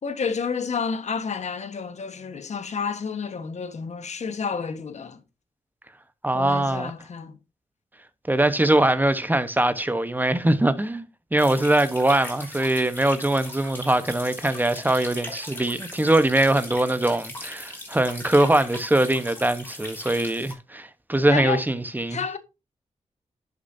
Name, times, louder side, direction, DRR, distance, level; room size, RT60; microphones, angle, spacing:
voice 1, 0.0-5.2 6.3-7.4 21.3-21.6 22.1-22.4, left 5 dB, 65° left, 1.4 m, -30 dB
voice 2, 6.2-6.9 8.3-22.2, right 1 dB, 15° right, 1.1 m, -22 dB
sound 1, 11.4-20.5, left 1 dB, 15° left, 4.1 m, -39 dB
11.0 x 6.8 x 2.8 m
cardioid pair, 85°, 12 cm